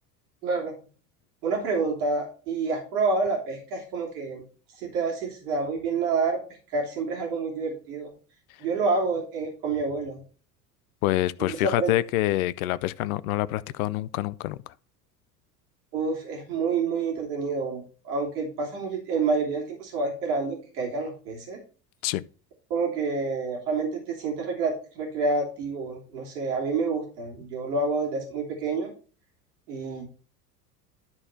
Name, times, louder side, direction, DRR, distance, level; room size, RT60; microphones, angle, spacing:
voice 1, 0.4-0.7 1.4-4.4 4.8-6.4 6.7-8.1 8.6-10.2 11.6-11.9 15.9-21.6 22.7-28.9 29.7-30.1, right 4 dB, 70° right, 3.2 m, -28 dB
voice 2, 11.0-14.6 22.0-22.2, left 15 dB, 60° left, 0.7 m, -26 dB
12.5 x 4.3 x 4.4 m
figure-of-eight pair, 75°, 47 cm